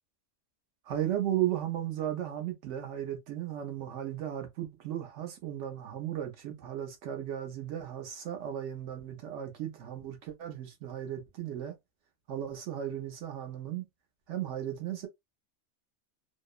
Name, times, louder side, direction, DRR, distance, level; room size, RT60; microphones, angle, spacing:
voice 1, 0.9-11.7 12.3-13.9 14.3-15.1, right 11 dB, 75° right, 1.0 m, -35 dB
2.8 x 2.0 x 2.2 m
omnidirectional pair, 1.3 m